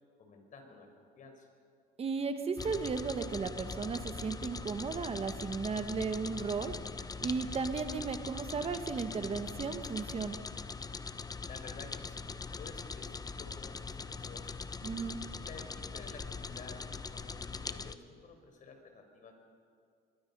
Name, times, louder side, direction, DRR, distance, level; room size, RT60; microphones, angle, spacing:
voice 1, 0.2-1.5 11.5-12.3 12.6-14.5 15.3-19.3, left 4 dB, 50° left, 4 dB, 4.4 m, -52 dB
voice 2, 2.0-6.7 7.2-10.4 14.8-15.2, right 5 dB, 35° right, 8 dB, 1.4 m, -35 dB
sound 1, 2.6-17.9, left 4 dB, 20° left, 0.8 m, -42 dB
24.0 x 22.5 x 5.5 m, 2.3 s
cardioid pair, 110°, 17 cm